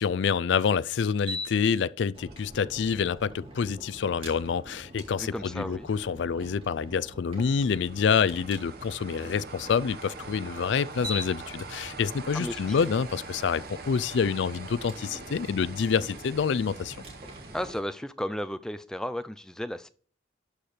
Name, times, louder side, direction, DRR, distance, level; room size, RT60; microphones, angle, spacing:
voice 1, 0.0-17.0, left 6 dB, 70° left, 0.4 m, -27 dB
sound 1, 1.2-1.8 2.3-2.4 7.5-17.8, right 1 dB, 50° right, 1.1 m, -41 dB
sound 2, 2.1-17.7, right 1 dB, 30° right, 2.2 m, -47 dB
voice 2, 5.2-5.9 12.3-12.9 17.5-19.9, left 1 dB, 5° left, 0.4 m, -34 dB
11.5 x 4.4 x 5.0 m
head